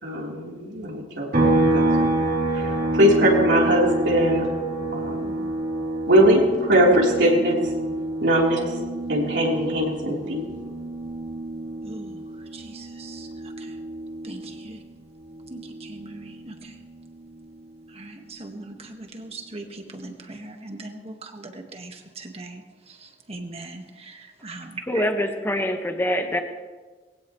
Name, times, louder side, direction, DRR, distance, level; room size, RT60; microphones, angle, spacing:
voice 1, 0.0-1.3 1.7-2.1 2.5-4.5 4.9-5.3 6.1-7.7 8.2-8.7 9.1-10.4, equal, 80° right, -3 dB, 3.8 m, -21 dB
sound 1, 1.3-14.9 15.2-17.4, right 2 dB, 60° right, 3.4 m, -27 dB
voice 2, 11.8-13.8 14.2-14.8 15.5-16.8 17.9-25.1, right 2 dB, 35° right, 4 dB, 1.7 m, -40 dB
voice 3, 24.9-26.4, left 1 dB, 15° left, 5 dB, 1.4 m, -24 dB
21.5 x 16.5 x 3.2 m, 1.4 s
head